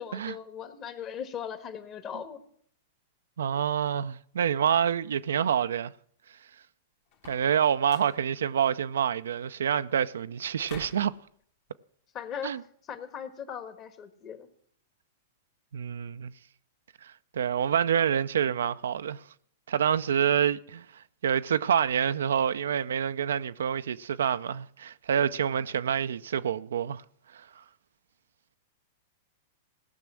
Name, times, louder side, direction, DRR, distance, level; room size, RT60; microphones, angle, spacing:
voice 1, 0.0-2.4 12.1-12.6 12.9-14.5, left 8 dB, 35° left, 1.5 m, -39 dB
voice 2, 3.4-5.9 7.3-11.1 12.4-12.6 15.7-16.3 17.0-19.2 19.7-27.0 27.3-27.6, right 8 dB, 80° right, 0.4 m, -27 dB
sound 1, 7.1-7.5 7.8-8.2 10.7-11.1, left 7 dB, 55° left, 1.9 m, -47 dB
17.0 x 6.1 x 7.5 m
hypercardioid pair, 115°, 0 cm